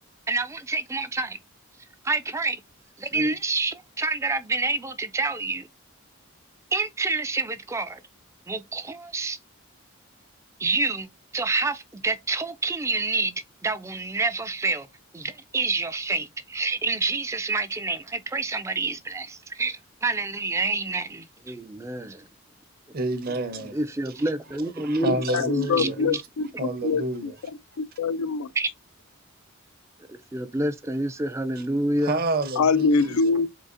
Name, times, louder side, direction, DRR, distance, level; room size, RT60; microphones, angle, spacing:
voice 1, 0.3-1.4 2.0-2.6 3.0-5.7 6.7-8.0 8.5-9.4 10.6-14.9 15.1-22.3 23.7-26.2 28.6-28.7 30.1-32.2, right 3 dB, 15° right, 0.3 m, -28 dB
voice 2, 22.9-23.8 24.2-24.3 24.8-26.0 26.6-27.4 31.6-31.7 32.0-33.4, right 2 dB, 45° right, 0.7 m, -29 dB
voice 3, 25.0-26.2 26.6-27.3 27.8-28.7 32.6-33.5, left 4 dB, 80° left, 0.4 m, -24 dB
4.1 x 3.9 x 2.5 m
head